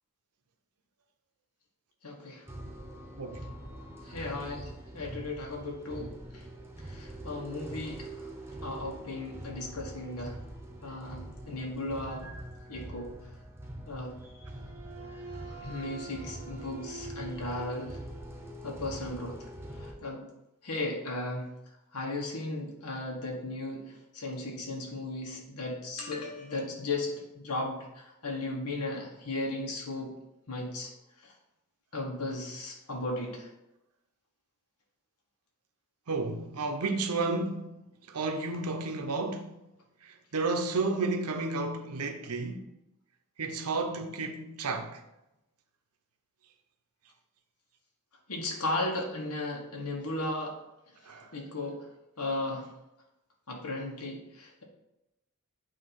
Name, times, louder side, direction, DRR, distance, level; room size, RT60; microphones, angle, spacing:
voice 1, 2.0-2.4 4.0-6.5 6.8-8.3 8.6-10.4 10.8-12.3 12.7-13.1 13.8-14.2 15.6-18.0 18.6-19.5 19.8-20.2 20.6-21.5 21.9-30.1 30.5-30.9 31.2-31.3 31.9-33.5 48.3-50.6 51.3-51.9 52.2-52.7 53.5-54.6, left 2 dB, 90° left, 1.4 m, -36 dB
sound 1, 2.5-19.9, right 1 dB, 10° right, 0.9 m, -43 dB
voice 2, 36.1-37.7 38.1-39.5 40.3-42.6 43.4-45.0 51.1-51.3, right 3 dB, 85° right, 0.8 m, -32 dB
8.5 x 2.9 x 5.6 m
head